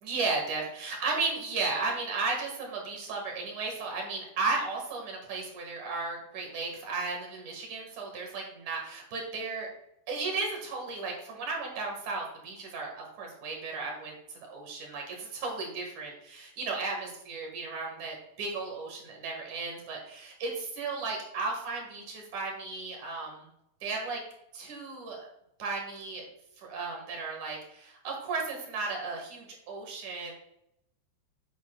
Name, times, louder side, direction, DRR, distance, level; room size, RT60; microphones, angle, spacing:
voice 1, 0.0-9.7 10.1-14.1 14.5-23.5 23.8-24.2 24.5-25.3 25.6-26.3 26.6-30.3, right 3 dB, 55° right, 0 dB, 2.7 m, -34 dB
8.4 x 8.4 x 2.3 m, 0.78 s
omnidirectional pair, 4.9 m